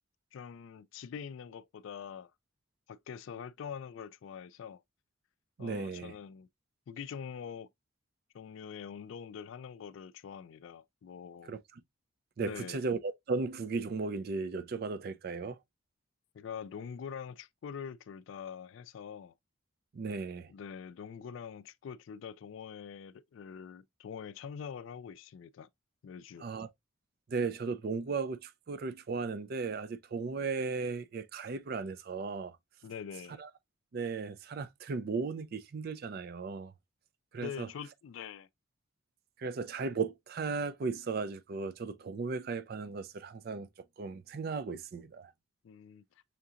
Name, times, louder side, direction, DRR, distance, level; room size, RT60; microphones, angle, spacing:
voice 1, 0.3-2.3 2.9-4.8 5.6-6.5 6.9-7.7 8.3-11.5 12.4-12.9 16.3-19.3 20.5-25.7 26.0-26.5 32.8-33.4 37.4-38.5 45.6-46.0, left 7 dB, 65° left, 0.3 m, -44 dB
voice 2, 5.6-6.1 11.5-11.8 12.4-15.6 19.9-20.5 26.4-26.7 27.3-32.6 33.4-33.5 33.9-36.7 37.3-37.7 39.4-43.7 44.0-45.3, right 4 dB, 45° right, 0.3 m, -36 dB
5.7 x 2.8 x 2.4 m
head